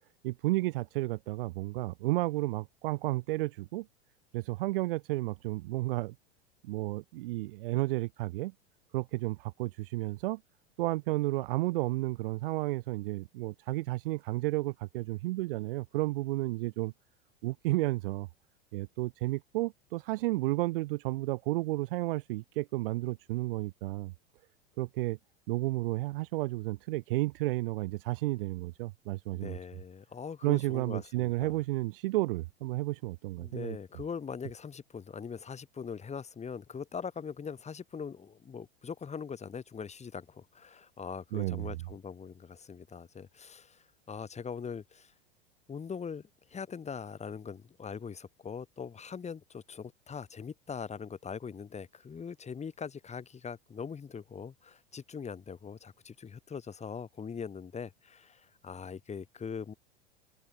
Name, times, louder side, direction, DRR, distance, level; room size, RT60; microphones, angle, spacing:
voice 1, 0.2-3.9 4.3-6.1 6.6-8.5 8.9-10.4 10.8-16.9 17.4-18.3 18.7-24.1 24.8-25.2 25.5-29.6 30.4-33.8 41.3-41.8, right 19 dB, 55° right, 1.8 m, -32 dB
voice 2, 29.3-31.6 33.4-45.1 45.7-59.7, left 6 dB, 20° left, 7.8 m, -42 dB
open air
figure-of-eight pair, 90°, 32 cm